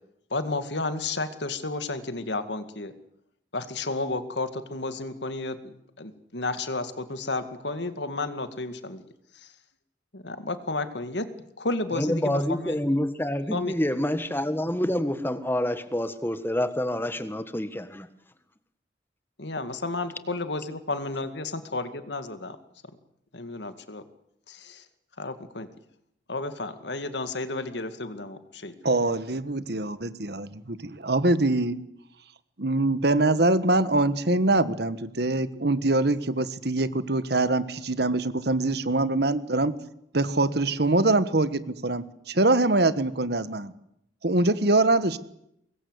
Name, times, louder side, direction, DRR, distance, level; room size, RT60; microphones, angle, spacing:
voice 1, 0.3-2.9 3.5-5.6 6.0-9.0 10.1-11.3 11.6-12.8 13.5-13.7 19.4-22.6 23.3-24.0 24.5-24.8 25.2-25.7 26.3-28.7, left 2 dB, 70° left, 10 dB, 2.2 m, -32 dB
voice 2, 11.9-18.1, left 1 dB, 10° left, 11 dB, 1.6 m, -27 dB
voice 3, 28.8-31.8 32.6-39.7 40.1-43.7 44.2-45.2, right 2 dB, 60° right, 14 dB, 1.5 m, -24 dB
24.5 x 21.0 x 8.2 m, 0.77 s
head